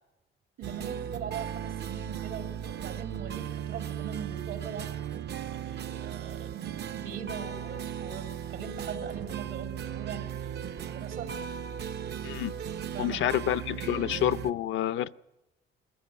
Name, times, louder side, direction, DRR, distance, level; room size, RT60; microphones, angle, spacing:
sound 1, 0.6-14.5, right 9 dB, 55° right, 0.7 m, -37 dB
voice 1, 0.6-4.9 5.5-11.3 12.9-13.3, right 7 dB, 80° right, 5 dB, 2.7 m, -41 dB
voice 2, 13.0-15.1, left 11 dB, 75° left, 14 dB, 0.6 m, -28 dB
21.5 x 14.5 x 9.3 m, 0.96 s
cardioid pair, 90°, 20 cm